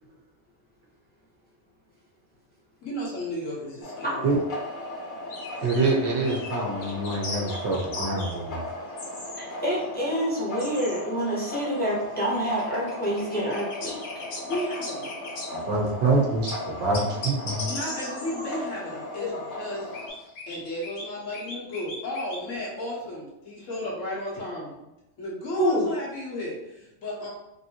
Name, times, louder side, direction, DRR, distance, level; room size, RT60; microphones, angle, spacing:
voice 1, 2.8-4.3 14.5-15.1 17.6-20.0 20.5-27.3, left 1 dB, 90° left, -5 dB, 1.5 m, -34 dB
sound 1, 3.8-20.1, left 1 dB, 45° left, 0.8 m, -37 dB
sound 2, 5.3-5.9 6.2-6.5 6.8-8.3 9.0-9.4 9.8-9.9 10.6-11.0 11.9-15.6 16.5-16.6 16.9-18.6 19.8-21.0 21.3-22.4, left 2 dB, 70° left, 1.2 m, -38 dB
voice 2, 5.6-8.8 15.5-17.7, right 2 dB, 65° right, -2 dB, 1.1 m, -26 dB
voice 3, 9.4-14.0 18.0-18.5 19.2-19.4 25.6-25.9, equal, 10° left, -6 dB, 0.7 m, -27 dB
3.5 x 2.6 x 2.8 m, 0.89 s
omnidirectional pair, 1.3 m